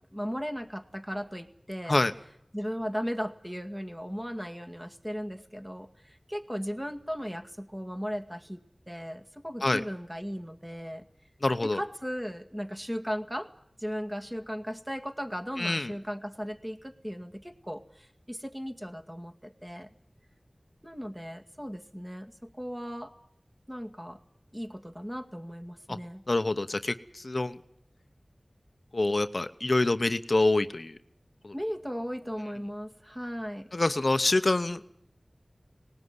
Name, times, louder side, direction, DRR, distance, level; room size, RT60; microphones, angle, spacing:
voice 1, 0.1-2.0 2.5-8.6 8.9-11.0 11.6-13.5 13.8-19.9 20.8-23.1 23.7-24.2 24.5-26.2 31.5-33.7, equal, 10° right, 5 dB, 2.1 m, -37 dB
voice 2, 11.4-11.8 15.6-15.9 25.9-26.0 26.3-27.6 28.9-30.9 31.4-31.5 33.7-34.8, left 2 dB, 60° left, 10 dB, 0.9 m, -26 dB
19.0 x 19.0 x 9.7 m, 0.71 s
wide cardioid pair, 45°, 0 cm